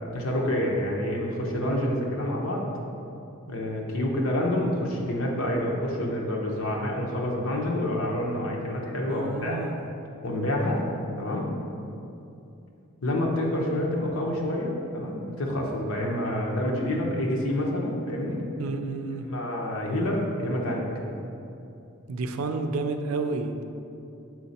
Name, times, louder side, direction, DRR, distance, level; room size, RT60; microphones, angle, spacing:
voice 1, 0.0-2.7 3.5-9.6 10.2-10.8 11.2-11.5 13.0-18.4 19.2-20.9, left 1 dB, 80° left, -2 dB, 1.0 m, -28 dB
voice 2, 9.1-9.7 18.6-19.2 22.1-23.6, right 3 dB, 85° right, 7 dB, 0.5 m, -30 dB
6.3 x 4.2 x 4.2 m, 2.7 s
head